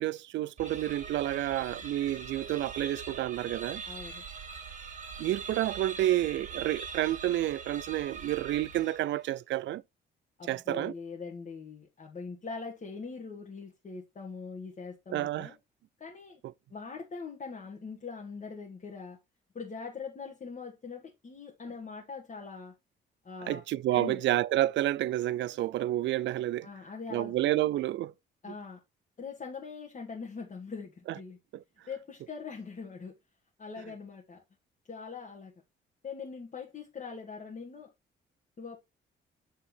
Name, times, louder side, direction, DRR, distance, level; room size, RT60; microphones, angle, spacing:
voice 1, 0.0-3.8 5.2-9.8 10.5-10.9 15.1-15.5 23.4-26.7 27.1-28.1 31.5-31.6, right 14 dB, 65° right, 0.4 m, -30 dB
sound 1, 0.6-9.3, right 5 dB, 40° right, 1.9 m, -42 dB
voice 2, 3.9-4.2 10.4-15.6 16.0-16.4 16.7-19.2 19.5-22.7 23.2-23.6 23.9-24.2 26.6-27.7 28.4-28.8 29.2-31.4 31.9-33.1 33.6-34.4 34.9-35.5 36.0-37.9 38.6-38.8, left 5 dB, 40° left, 1.6 m, -42 dB
8.3 x 3.5 x 4.4 m
cardioid pair, 90°, 20 cm